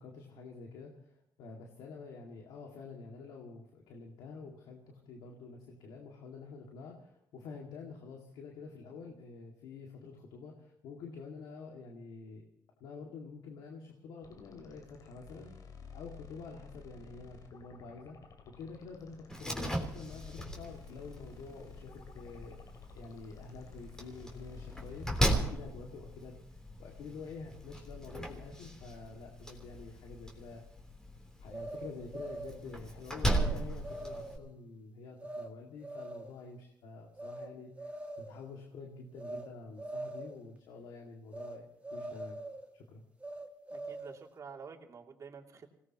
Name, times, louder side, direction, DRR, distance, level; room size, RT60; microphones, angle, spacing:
voice 1, 0.0-12.5 12.8-15.5 15.9-18.2 18.5-22.6 22.9-30.6 31.4-41.7 41.9-42.4 42.7-43.0, left 4 dB, 90° left, 0 dB, 2.2 m, -48 dB
sound 1, 14.2-25.3, left 5 dB, 55° left, 2.4 m, -53 dB
Slam, 19.3-34.4, right 1 dB, 10° left, 3.5 m, -38 dB
sound 2, 31.5-32.6 33.3-33.5 33.8-34.4 35.2-35.5 35.8-36.4 37.2-37.5 37.8-38.4 39.2-39.5 39.8-40.4 41.3-41.6 41.8-42.7 43.2-44.2, right 2 dB, 20° right, 2.1 m, -42 dB
voice 2, 43.7-45.7, right 5 dB, 45° right, 1 dB, 2.8 m, -49 dB
26.0 x 18.5 x 3.0 m, 0.75 s
cardioid pair, 90°, 7 cm